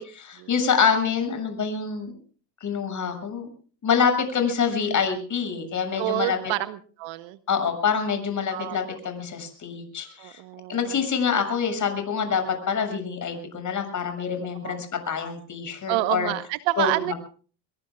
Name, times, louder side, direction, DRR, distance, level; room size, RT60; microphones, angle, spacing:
voice 1, 0.0-2.1 2.6-3.5 3.8-6.4 7.5-10.4 10.7-16.3 16.8-17.1, left 6 dB, 35° left, 7 dB, 7.0 m, -26 dB
voice 2, 6.0-7.4 8.5-8.8 10.2-11.1 14.6-14.8 15.9-17.1, right 16 dB, 60° right, 13 dB, 1.2 m, -28 dB
24.0 x 22.5 x 2.4 m, 0.40 s
hypercardioid pair, 85°, 49 cm